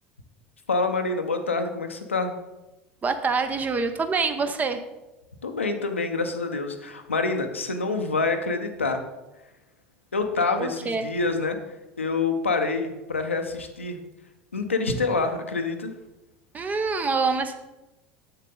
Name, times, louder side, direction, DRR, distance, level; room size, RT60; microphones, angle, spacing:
voice 1, 0.7-2.3 5.4-9.0 10.1-11.6 12.0-14.0 14.5-15.9, left 3 dB, 85° left, 6 dB, 0.7 m, -26 dB
voice 2, 3.0-4.8 10.6-11.1 16.5-17.5, right 4 dB, 25° right, 9 dB, 0.7 m, -25 dB
7.3 x 6.8 x 3.9 m, 1.0 s
figure-of-eight pair, 70°, 7 cm